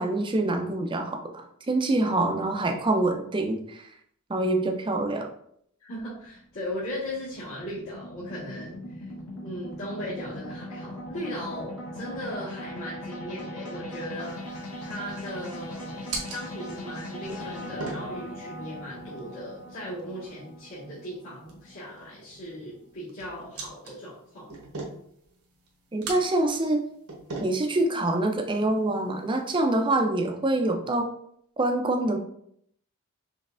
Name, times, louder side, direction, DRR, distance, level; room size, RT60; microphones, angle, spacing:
voice 1, 0.0-3.8 4.3-5.3 25.9-26.8 27.4-31.1 31.6-32.2, right 2 dB, 20° right, 4 dB, 0.5 m, -25 dB
voice 2, 5.8-9.1 9.4-24.5, equal, 65° left, -12 dB, 1.6 m, -38 dB
sound 1, 6.0-22.4, equal, 80° left, 1.3 m, -40 dB
sound 2, 14.1-29.5, right 3 dB, 70° right, 1.0 m, -43 dB
5.3 x 3.2 x 2.5 m, 0.69 s
head